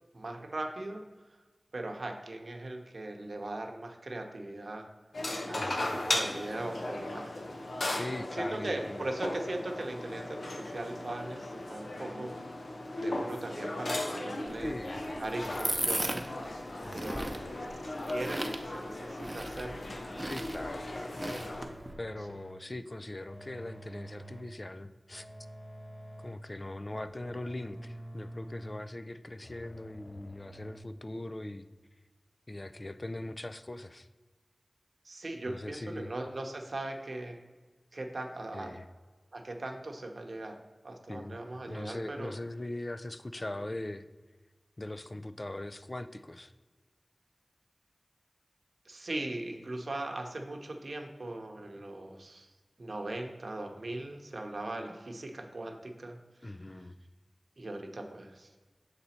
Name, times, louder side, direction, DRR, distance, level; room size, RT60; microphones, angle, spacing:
voice 1, 0.1-1.0 1.7-4.9 5.4-7.4 8.4-12.3 13.0-14.7 15.2-16.4 16.9-19.7 35.0-37.4 37.9-38.8 39.3-40.6 40.8-42.3 48.8-52.5 52.8-56.5 57.6-58.5, right 2 dB, 70° right, 3 dB, 0.8 m, -39 dB
sound 1, 5.1-21.7, left 1 dB, 85° left, 0.8 m, -37 dB
voice 2, 5.6-6.4 7.9-9.1 14.6-15.1 15.4-15.9 16.8-17.4 20.3-21.2 22.0-25.3 26.2-31.7 32.5-34.1 35.5-36.1 38.5-38.9 41.1-41.4 41.7-44.1 44.8-46.5 56.4-57.0, left 1 dB, 40° left, 11 dB, 0.3 m, -41 dB
sound 2, 14.5-21.9, right 1 dB, 25° right, 0.6 m, -38 dB
sound 3, 21.4-22.7 23.3-24.6 25.1-26.6 27.1-29.0 29.4-30.8, right 1 dB, 20° left, 0.8 m, -48 dB
6.7 x 4.1 x 4.2 m, 1.3 s
wide cardioid pair, 60°, 0 cm